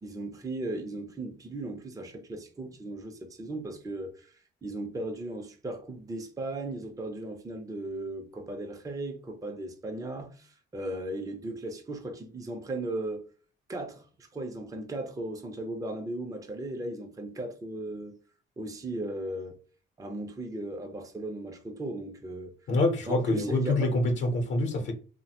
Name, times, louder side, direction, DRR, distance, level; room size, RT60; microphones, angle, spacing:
voice 1, 0.0-13.2 13.7-18.2 18.6-19.6 20.0-22.5 23.1-23.9, right 2 dB, 15° right, 0.5 m, -37 dB
voice 2, 22.7-24.9, left 2 dB, 65° left, 0.8 m, -26 dB
3.1 x 2.1 x 2.8 m
cardioid pair, 90°, 20 cm